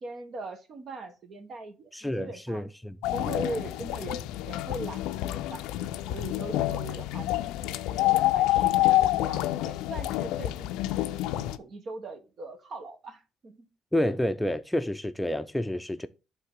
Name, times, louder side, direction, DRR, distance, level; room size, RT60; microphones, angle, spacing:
voice 1, 0.0-2.6 3.1-5.7 6.1-11.0 11.4-13.7, right 2 dB, 55° right, 1.3 m, -40 dB
voice 2, 1.9-3.0 13.9-16.1, left 1 dB, 10° left, 0.5 m, -29 dB
sound 1, 3.0-11.6, left 15 dB, 75° left, 0.4 m, -27 dB
9.0 x 3.9 x 3.7 m
hypercardioid pair, 50°, 0 cm